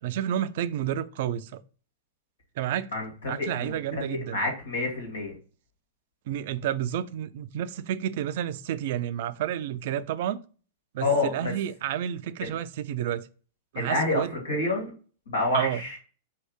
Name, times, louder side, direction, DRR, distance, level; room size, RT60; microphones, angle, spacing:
voice 1, 0.0-1.6 2.6-2.9 3.3-4.4 6.3-10.4 10.9-13.3 13.7-14.3 15.5-15.8, right 10 dB, 60° right, 0.4 m, -30 dB
voice 2, 2.9-3.7 4.1-5.3 11.0-11.5 12.4-12.5 13.8-14.9 15.3-16.0, left 2 dB, 90° left, 2.1 m, -28 dB
4.6 x 3.2 x 3.2 m
hypercardioid pair, 110°, 0 cm